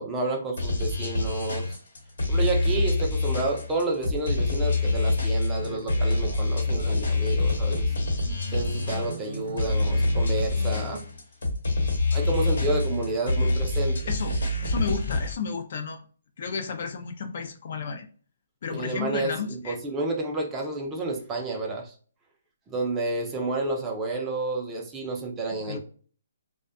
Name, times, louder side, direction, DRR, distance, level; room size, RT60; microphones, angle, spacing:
voice 1, 0.0-1.7 2.3-7.9 8.5-11.0 12.1-14.0 18.7-21.9 22.7-25.8, right 2 dB, 15° right, 1 dB, 0.5 m, -30 dB
sound 1, 0.6-15.3, left 2 dB, 75° left, 1.0 m, -26 dB
sound 2, 5.6-11.0, right 4 dB, 65° right, 0.6 m, -41 dB
voice 2, 14.1-16.0 16.4-18.1 18.6-19.8 25.5-25.8, left 5 dB, 55° left, 7 dB, 0.5 m, -33 dB
2.5 x 2.2 x 2.4 m, 0.42 s
hypercardioid pair, 155°, 0 cm